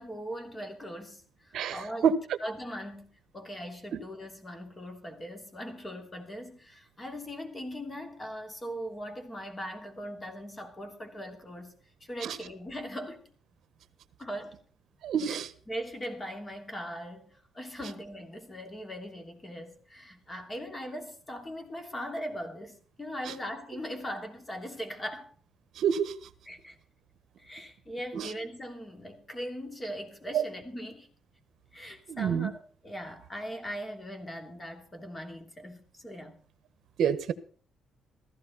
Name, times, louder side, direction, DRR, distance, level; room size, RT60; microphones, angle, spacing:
voice 1, 0.0-2.1 2.4-11.7 12.0-13.2 14.2-14.6 15.3-15.4 15.7-25.3 26.5-26.8 27.4-31.1 31.7-36.4, equal, 15° left, 2.9 m, -40 dB
voice 2, 1.5-2.2 3.9-4.0 12.2-12.4 15.0-15.5 25.8-26.1 28.1-28.3 30.3-30.4 32.1-32.5 37.0-37.3, right 7 dB, 60° right, 1.4 m, -27 dB
15.5 x 15.0 x 4.2 m
cardioid pair, 155°, 0 cm